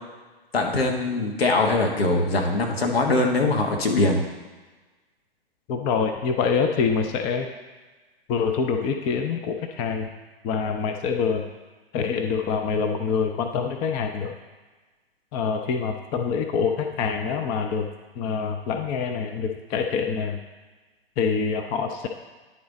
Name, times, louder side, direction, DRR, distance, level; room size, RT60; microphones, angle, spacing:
voice 1, 0.5-4.3, left 2 dB, 75° left, 2 dB, 1.3 m, -22 dB
voice 2, 5.7-7.5 8.3-10.1 10.4-11.5 11.9-14.3 15.3-17.9 18.2-20.4 21.2-22.1, left 5 dB, 20° left, 5 dB, 0.4 m, -25 dB
9.8 x 3.9 x 4.0 m, 1.3 s
figure-of-eight pair, 115°, 30 cm